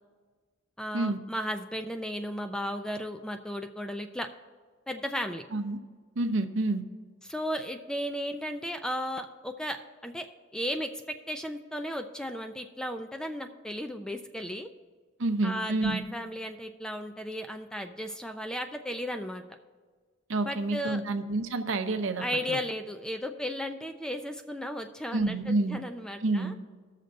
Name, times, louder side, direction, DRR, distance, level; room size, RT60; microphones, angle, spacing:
voice 1, 0.8-4.3 4.9-5.4 7.2-9.8 10.0-10.3 10.5-14.7 15.4-19.4 20.4-21.0 22.2-26.5, equal, 5° left, 6 dB, 0.3 m, -35 dB
voice 2, 6.2-6.8 15.2-16.0 20.3-22.6 25.1-25.8 26.2-26.5, right 2 dB, 70° right, 7 dB, 0.7 m, -28 dB
19.5 x 6.6 x 2.6 m, 1.5 s
head